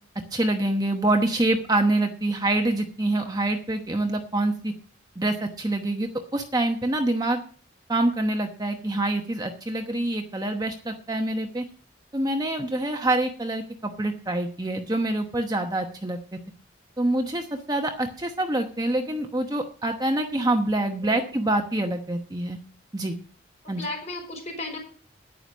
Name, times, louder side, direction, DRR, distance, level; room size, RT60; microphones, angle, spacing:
voice 1, 0.3-4.7 5.2-7.4 7.9-11.6 12.1-16.4 17.0-22.6 22.9-23.2 23.7-23.8, right 1 dB, 20° right, 4 dB, 1.0 m, -26 dB
voice 2, 23.6-24.8, left 2 dB, 35° left, 2 dB, 4.4 m, -34 dB
9.9 x 9.9 x 6.2 m, 0.42 s
head